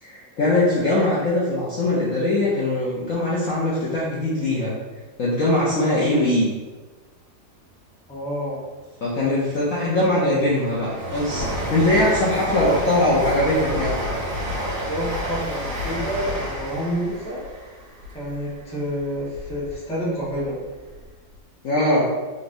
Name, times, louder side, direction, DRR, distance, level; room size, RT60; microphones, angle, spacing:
voice 1, 0.0-4.7 5.2-6.5 9.0-14.0 21.6-22.1, left 1 dB, 60° left, -7 dB, 0.9 m, -21 dB
voice 2, 8.1-8.6 9.2-9.4 12.5-12.6 14.9-17.5 18.1-20.6, equal, 5° left, -8 dB, 0.7 m, -29 dB
Train, 9.8-19.7 20.2-21.1 21.3-21.4, equal, 75° right, 1.6 m, -30 dB
3.9 x 3.3 x 2.6 m, 1.2 s
omnidirectional pair, 2.0 m